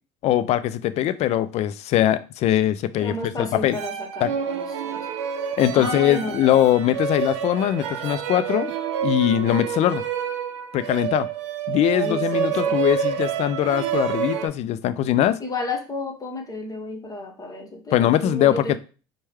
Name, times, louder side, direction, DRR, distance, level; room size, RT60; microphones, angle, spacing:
voice 1, 0.2-3.8 4.2-4.3 5.6-8.7 9.0-10.0 10.7-11.3 11.7-15.4 17.9-18.8, left 12 dB, 50° left, 14 dB, 0.4 m, -21 dB
voice 2, 3.0-5.1 5.7-6.7 11.9-12.8 13.2-13.3 15.4-18.8, left 2 dB, 25° left, 3 dB, 1.0 m, -32 dB
sound 1, 3.7-14.5, right 8 dB, 85° right, 0.5 m, -28 dB
4.4 x 2.2 x 3.4 m, 0.36 s
supercardioid pair, 90°, 15 cm